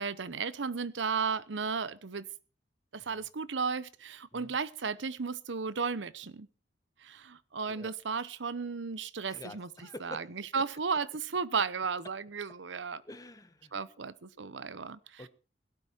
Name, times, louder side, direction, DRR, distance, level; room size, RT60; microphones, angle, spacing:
voice 1, 0.0-2.3 2.9-6.5 7.0-13.0 13.7-15.3, right 5 dB, 90° right, 17 dB, 0.8 m, -34 dB
voice 2, 9.3-10.3 13.0-13.9 15.2-15.3, left 1 dB, 20° left, 11 dB, 1.3 m, -48 dB
17.5 x 12.0 x 4.5 m, 0.34 s
head